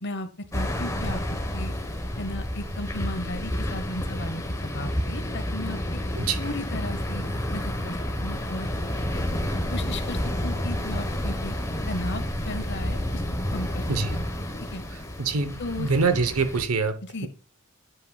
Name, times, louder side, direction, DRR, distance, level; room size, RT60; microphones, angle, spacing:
voice 1, 0.0-1.2 1.5-1.7 2.2-5.8 6.4-7.3 7.5-8.7 9.7-11.5 11.9-13.2 13.5-13.8 14.1-14.2 14.7-14.8 15.6-15.9 17.1-17.3, left 1 dB, 55° left, 10 dB, 1.0 m, -35 dB
sound 1, 0.5-16.6, left 1 dB, 15° left, 1.1 m, -30 dB
voice 2, 14.9-17.3, right 4 dB, 80° right, 11 dB, 0.8 m, -26 dB
8.2 x 7.9 x 2.3 m, 0.38 s
head